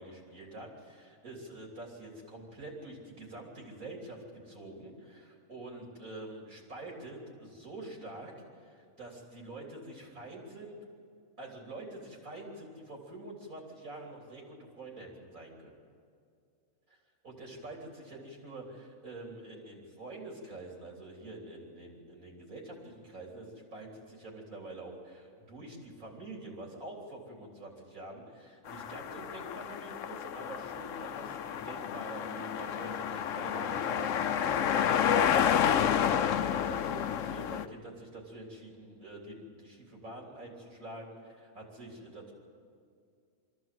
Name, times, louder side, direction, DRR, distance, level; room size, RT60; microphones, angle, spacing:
voice 1, 0.0-8.3 8.6-10.8 11.4-15.7 17.2-42.3, right 2 dB, 85° right, -1 dB, 3.9 m, -46 dB
sound 1, 28.7-37.7, left 9 dB, 70° left, 1.0 m, -30 dB
24.0 x 14.5 x 7.7 m, 2.3 s
omnidirectional pair, 1.4 m